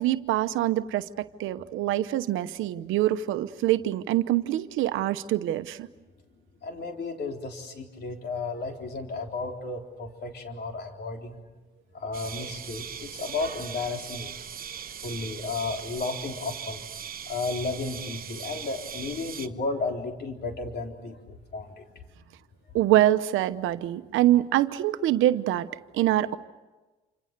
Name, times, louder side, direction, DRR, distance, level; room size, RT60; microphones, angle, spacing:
voice 1, 0.0-5.9 22.7-25.7 25.9-26.4, right 14 dB, 90° right, 11 dB, 1.0 m, -25 dB
voice 2, 6.6-11.4 11.9-14.3 15.0-16.9 17.3-21.8, left 3 dB, 55° left, 3 dB, 3.9 m, -33 dB
sound 1, 12.1-19.5, right 8 dB, 45° right, 1.1 m, -39 dB
28.0 x 26.5 x 6.8 m, 1.2 s
cardioid pair, 90°, 20 cm